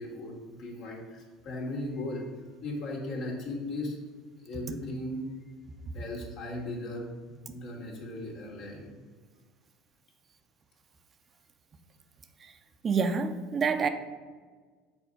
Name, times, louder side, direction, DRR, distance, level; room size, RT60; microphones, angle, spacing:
voice 1, 0.0-2.3 2.6-4.0 4.4-5.2 5.9-8.9, left 1 dB, 60° left, -2 dB, 2.2 m, -37 dB
voice 2, 12.8-13.9, right 5 dB, 35° right, 8 dB, 0.6 m, -27 dB
6.2 x 4.2 x 6.4 m, 1.5 s
hypercardioid pair, 80°, 0 cm